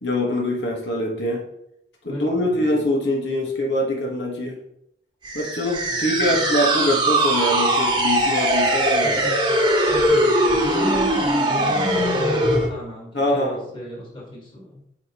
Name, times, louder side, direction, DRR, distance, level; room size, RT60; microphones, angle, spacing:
voice 1, 0.0-1.4 2.0-4.6 5.3-9.2 13.1-13.7, left 1 dB, 80° left, -2 dB, 1.6 m, -23 dB
voice 2, 2.1-2.8 5.9-6.4 9.0-15.0, left 1 dB, 25° left, -4 dB, 2.2 m, -33 dB
sound 1, 5.2-12.7, right 1 dB, 25° right, 1.0 m, -20 dB
9.0 x 5.0 x 3.1 m, 0.76 s
head